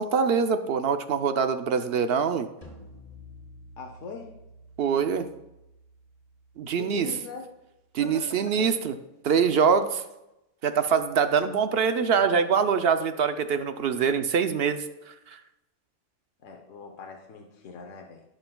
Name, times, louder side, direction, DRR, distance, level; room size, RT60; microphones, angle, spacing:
voice 1, 0.0-2.5 4.8-5.3 6.6-7.1 7.9-8.9 9.2-10.0 10.6-15.4, right 6 dB, 60° right, 9 dB, 0.7 m, -24 dB
sound 1, 2.6-8.0, left 1 dB, 30° left, 1.2 m, -51 dB
voice 2, 3.8-4.3 6.6-7.5 8.0-8.7 16.4-18.2, left 5 dB, 80° left, 2 dB, 1.2 m, -41 dB
16.5 x 5.7 x 2.2 m, 0.92 s
omnidirectional pair, 1.3 m